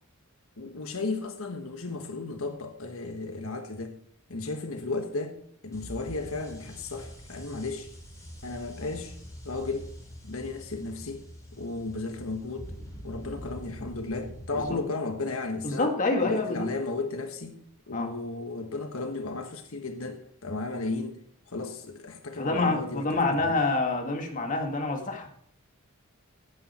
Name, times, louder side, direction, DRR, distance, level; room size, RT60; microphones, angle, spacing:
voice 1, 0.6-3.9 4.3-5.4 5.6-7.9 8.4-9.1 9.4-9.9 10.2-11.2 11.5-12.7 13.0-15.9 16.2-17.6 17.9-21.2 21.5-23.5, left 3 dB, 80° left, 6 dB, 1.3 m, -34 dB
sound 1, 5.7-14.7, equal, 15° left, 3.9 m, -44 dB
voice 2, 15.6-16.7 17.9-18.1 22.4-25.3, left 3 dB, 40° left, 3 dB, 1.8 m, -27 dB
16.0 x 8.8 x 4.3 m, 0.63 s
head